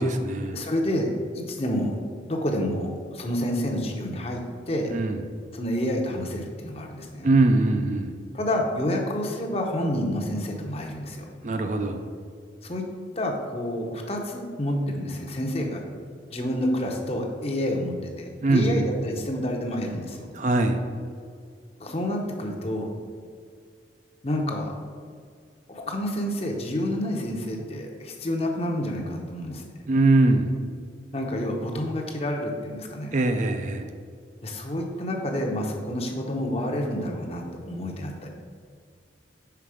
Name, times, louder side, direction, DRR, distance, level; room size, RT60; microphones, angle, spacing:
voice 1, 0.0-0.6 4.9-5.2 7.2-8.2 11.4-12.0 18.4-18.9 20.3-20.8 29.9-30.6 33.1-33.9, right 2 dB, 40° right, 6 dB, 0.4 m, -22 dB
voice 2, 0.5-2.0 2.3-4.9 5.5-7.3 8.3-11.3 12.6-12.8 13.2-15.8 16.3-20.3 21.8-22.9 24.2-24.7 25.7-29.6 31.1-33.1 34.4-38.3, left 1 dB, 35° left, 1 dB, 0.7 m, -29 dB
5.8 x 4.4 x 4.8 m, 2.1 s
head